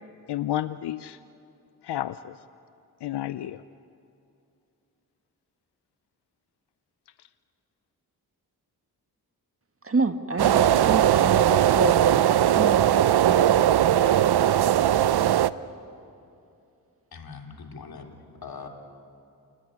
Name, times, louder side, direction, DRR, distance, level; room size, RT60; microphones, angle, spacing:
voice 1, 0.3-1.2 1.8-2.4 3.0-3.6, left 13 dB, 80° left, 0.6 m, -31 dB
voice 2, 9.8-13.5, right 3 dB, 35° right, 1.8 m, -28 dB
sound 1, 10.4-15.5, right 11 dB, 70° right, 0.7 m, -19 dB
voice 3, 17.1-18.7, left 5 dB, 65° left, 3.2 m, -42 dB
29.5 x 19.0 x 9.8 m
cardioid pair, 55°, 39 cm